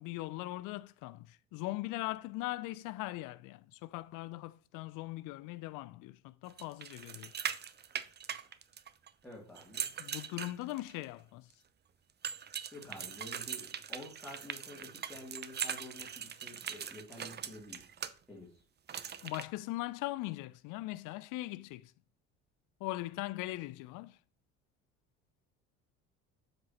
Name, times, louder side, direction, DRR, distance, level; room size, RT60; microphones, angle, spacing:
voice 1, 0.0-7.3 10.0-11.5 19.2-21.9 22.8-24.2, left 18 dB, 55° left, 0.5 m, -40 dB
sound 1, 6.6-9.1 9.6-11.0 12.2-18.1 18.9-19.4, right 8 dB, 25° right, 0.6 m, -41 dB
voice 2, 9.2-9.9 12.7-17.9 18.3-18.6, left 1 dB, 5° left, 2.7 m, -49 dB
7.4 x 6.1 x 2.9 m
hypercardioid pair, 65°, 38 cm